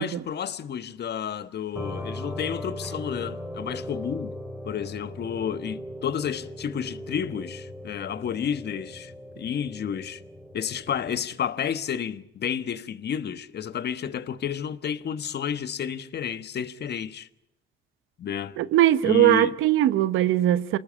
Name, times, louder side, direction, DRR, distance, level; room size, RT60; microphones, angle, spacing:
voice 1, 0.0-4.3 4.6-10.2 10.5-17.3 18.2-18.6 19.0-19.5, left 8 dB, 55° left, 1.3 m, -31 dB
sound 1, 1.8-11.3, left 1 dB, 5° right, 4.7 m, -38 dB
voice 2, 18.6-20.8, right 13 dB, 90° right, 1.0 m, -20 dB
28.0 x 19.5 x 8.7 m
cardioid pair, 90°, 20 cm